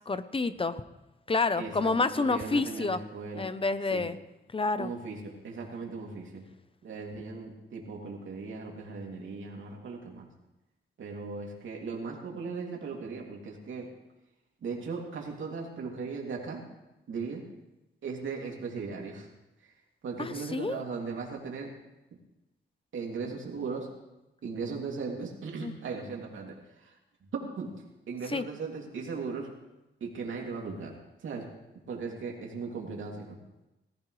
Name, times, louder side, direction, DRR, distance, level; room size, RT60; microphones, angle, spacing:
voice 1, 0.1-0.8 1.3-3.0 3.4-4.2 4.5-4.9 20.2-20.8 25.6-25.7 28.3-28.4, left 3 dB, 30° left, 12 dB, 0.8 m, -28 dB
voice 2, 1.6-3.5 3.9-4.1 4.8-6.5 6.8-10.3 11.0-13.9 14.6-16.7 17.1-17.4 18.0-19.3 19.6-19.7 20.0-21.7 22.9-23.9 24.4-26.9 27.2-27.7 28.1-29.5 30.0-31.5 31.9-33.4, right 4 dB, 85° right, -1 dB, 2.8 m, -38 dB
19.0 x 14.5 x 3.3 m, 0.97 s
cardioid pair, 90°, 20 cm